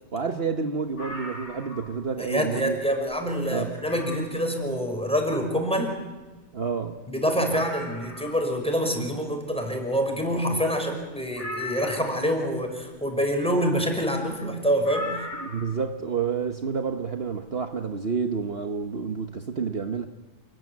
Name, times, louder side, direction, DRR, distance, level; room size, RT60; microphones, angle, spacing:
voice 1, 0.1-2.8 3.5-3.7 6.5-7.0 15.4-20.1, right 5 dB, 55° right, 6 dB, 1.4 m, -29 dB
sound 1, 0.9-2.0 2.4-2.5 3.1-3.2 3.8-4.4 6.2-6.3 6.4-6.5 7.0-7.1 7.5-8.5 11.4-12.3 14.8-15.9 17.2-17.3, left 2 dB, 70° left, 6.2 m, -38 dB
voice 2, 2.2-6.0 7.1-15.1, equal, 5° left, 3 dB, 5.7 m, -26 dB
28.5 x 20.5 x 9.7 m, 1.2 s
omnidirectional pair, 1.3 m